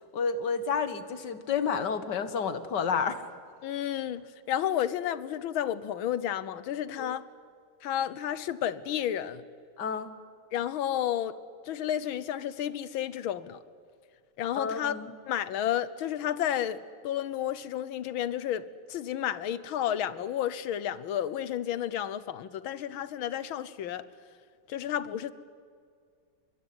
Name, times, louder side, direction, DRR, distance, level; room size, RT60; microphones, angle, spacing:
voice 1, 0.1-3.2 7.0-7.1 9.8-10.1 14.5-15.1, left 6 dB, 60° left, 2.0 m, -30 dB
voice 2, 3.6-7.2 7.8-9.4 10.5-11.4 11.7-13.6 14.4-15.0 15.3-24.1 24.7-25.3, left 10 dB, 85° left, 1.8 m, -31 dB
23.5 x 22.0 x 9.6 m
omnidirectional pair, 2.2 m